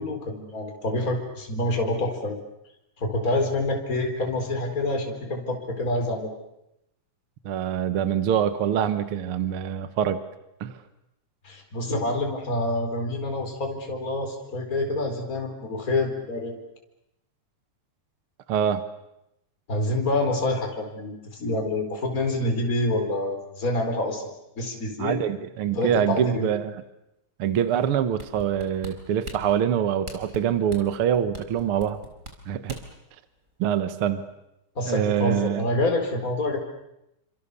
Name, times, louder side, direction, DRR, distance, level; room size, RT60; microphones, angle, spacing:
voice 1, 0.0-2.4 3.0-6.3 11.4-16.6 19.7-25.2 25.7-26.5 34.8-36.6, left 2 dB, 25° left, 3 dB, 4.5 m, -27 dB
voice 2, 7.4-10.2 10.6-10.8 18.5-18.8 25.0-26.7 27.4-32.0 32.4-32.8 33.6-34.2 34.9-35.7, right 9 dB, 55° right, 11 dB, 1.6 m, -25 dB
sound 1, 28.2-33.0 33.5-33.6, right 1 dB, 25° right, 4.2 m, -40 dB
29.5 x 26.0 x 6.9 m, 0.87 s
omnidirectional pair, 3.7 m